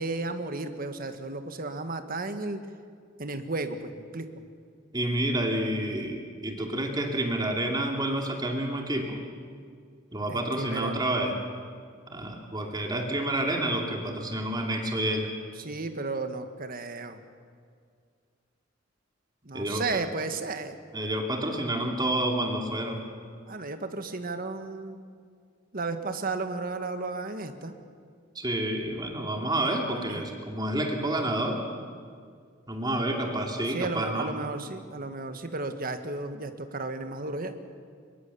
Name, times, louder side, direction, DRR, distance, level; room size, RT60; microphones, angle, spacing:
voice 1, 0.0-2.6 3.2-4.4 10.3-11.0 15.6-17.2 19.4-20.8 23.5-25.0 25.7-27.8 29.6-29.8 30.0-30.3 33.7-37.6, right 3 dB, 45° right, 8 dB, 1.6 m, -34 dB
voice 2, 4.9-9.2 10.1-11.3 12.1-15.3 19.5-20.0 20.9-23.0 28.3-31.6 32.7-34.3, right 1 dB, 20° right, 2 dB, 2.5 m, -29 dB
24.0 x 22.0 x 7.0 m, 2.1 s
head